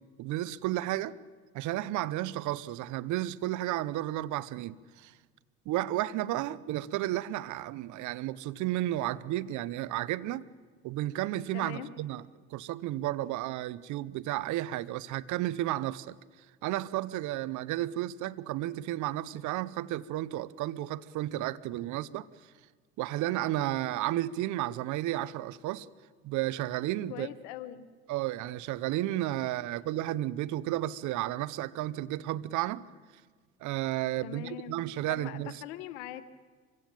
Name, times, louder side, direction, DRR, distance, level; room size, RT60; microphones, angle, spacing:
voice 1, 0.2-1.2 1.5-5.1 5.7-10.4 10.8-12.2 12.5-16.2 16.6-22.3 23.0-25.9 26.2-27.3 28.1-32.8 33.6-35.6, right 15 dB, 60° right, 0.8 m, -32 dB
voice 2, 11.5-11.9 27.1-27.9 34.2-34.8 35.1-36.3, left 11 dB, 75° left, 1.4 m, -41 dB
24.5 x 16.0 x 9.1 m
hypercardioid pair, 70°, 33 cm